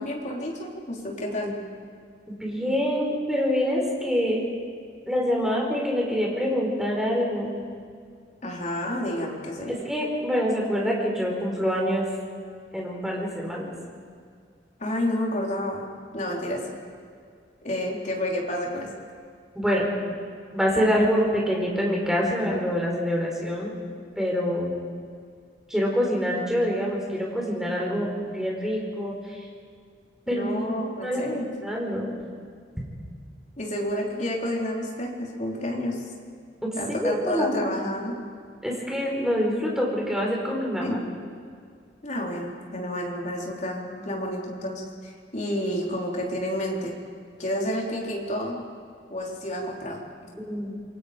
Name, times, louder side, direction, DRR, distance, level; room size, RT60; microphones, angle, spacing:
voice 1, 0.0-1.6 8.4-9.8 14.8-15.9 16.1-16.6 17.6-18.9 30.3-31.5 33.6-36.0 36.7-38.1 40.8-41.0 42.0-47.0 47.4-48.6 49.1-50.0, left 1 dB, 40° left, -1 dB, 4.0 m, -30 dB
voice 2, 2.3-4.4 5.1-7.5 9.9-12.1 12.7-13.7 19.5-19.9 20.5-23.7 24.2-24.7 25.7-29.1 30.3-30.5 30.8-31.2 31.6-32.1 36.6-37.5 38.6-41.0 50.4-50.7, equal, 5° right, -2 dB, 4.7 m, -25 dB
27.5 x 23.0 x 5.3 m, 2.1 s
head